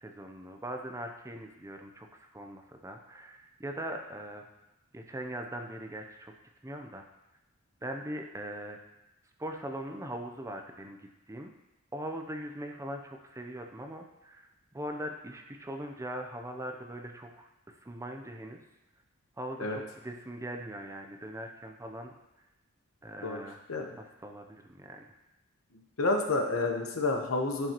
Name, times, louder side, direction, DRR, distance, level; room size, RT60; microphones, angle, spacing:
voice 1, 0.0-4.5 4.9-6.3 6.6-7.0 7.8-8.8 9.4-11.0 11.3-11.5 11.9-18.6 19.4-22.1 23.0-23.6 24.0-25.0, right 1 dB, 15° right, 4 dB, 0.6 m, -41 dB
voice 2, 26.0-27.7, left 2 dB, 80° left, 3 dB, 1.0 m, -29 dB
11.0 x 5.6 x 3.0 m, 0.94 s
head